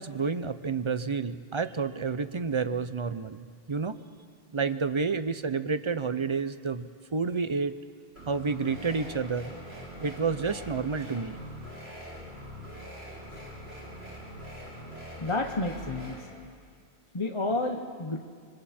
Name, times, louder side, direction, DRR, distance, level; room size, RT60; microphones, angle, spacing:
voice 1, 0.0-4.0 4.5-7.8 8.3-9.5 10.0-11.4, right 5 dB, 35° right, 11 dB, 0.5 m, -30 dB
sound 1, 8.1-16.2, equal, 90° right, 5.9 m, -43 dB
voice 2, 15.2-16.2 17.1-18.2, left 2 dB, 30° left, 3 dB, 1.0 m, -30 dB
27.0 x 23.5 x 4.3 m, 2.1 s
omnidirectional pair, 1.0 m